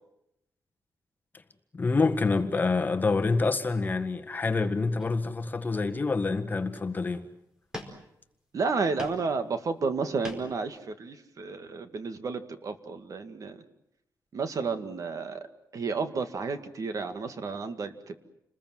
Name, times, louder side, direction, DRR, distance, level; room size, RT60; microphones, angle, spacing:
voice 1, 1.7-7.2, left 3 dB, 25° left, 1.6 m, -27 dB
sound 1, 4.3-4.5 5.0-5.7 6.2-6.3 6.6-7.1 7.7-8.4 8.7-9.3 9.7-10.7, left 1 dB, 10° right, 4.6 m, -43 dB
voice 2, 8.5-13.6 14.3-15.5 15.7-18.2, right 4 dB, 55° right, 2.1 m, -32 dB
29.0 x 21.0 x 7.7 m
wide cardioid pair, 135°, 7 cm